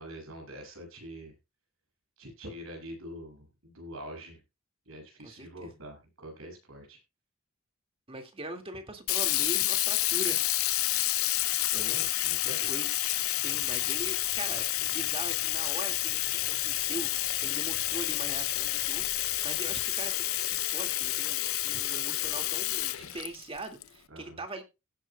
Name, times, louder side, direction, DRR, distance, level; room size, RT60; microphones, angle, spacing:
voice 1, 0.0-1.3 2.2-4.4 4.9-7.0 11.7-12.7 19.6-19.8 24.1-24.4, equal, 75° right, 2 dB, 7.4 m, -44 dB
voice 2, 5.2-5.7 8.1-10.4 12.7-24.6, right 2 dB, 25° right, 4 dB, 2.2 m, -41 dB
Sink (filling or washing), 9.1-23.8, left 16 dB, 80° left, 0.6 m, -29 dB
Bird vocalization bird call bird song, 13.4-20.1, left 4 dB, 65° left, 5.4 m, -53 dB
17.0 x 9.5 x 2.3 m, 0.26 s
head